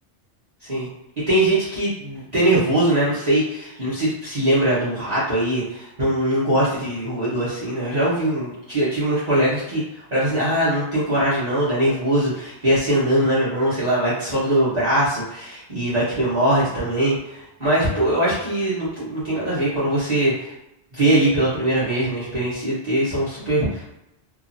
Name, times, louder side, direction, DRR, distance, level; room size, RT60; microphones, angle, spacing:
voice 1, 1.3-20.5 20.9-23.9, right 1 dB, 40° right, -11 dB, 0.9 m, -21 dB
2.9 x 2.4 x 2.5 m, 0.88 s
omnidirectional pair, 1.2 m